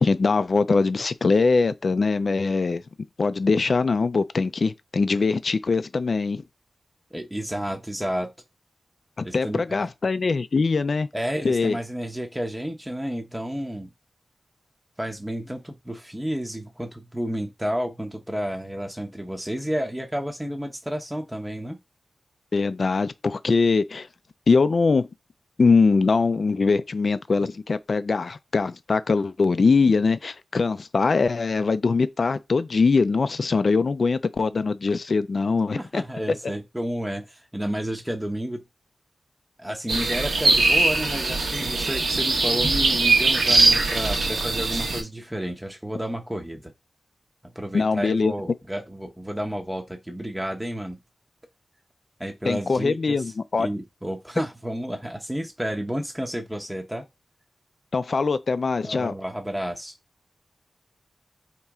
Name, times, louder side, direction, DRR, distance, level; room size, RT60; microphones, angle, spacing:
voice 1, 0.0-2.8 3.2-6.4 9.2-11.1 11.4-11.8 22.5-24.1 24.5-25.1 25.6-36.0 47.7-48.3 52.4-53.7 57.9-59.1, left 4 dB, 60° left, 0.4 m, -22 dB
voice 2, 7.1-8.3 9.2-9.9 11.1-13.9 15.0-21.8 35.7-38.6 39.6-46.7 47.5-51.0 52.2-53.3 53.6-57.0 58.8-59.9, equal, 10° right, 0.7 m, -31 dB
sound 1, 39.9-45.0, right 3 dB, 85° right, 1.1 m, -21 dB
4.3 x 3.0 x 3.5 m
wide cardioid pair, 75°, 0 cm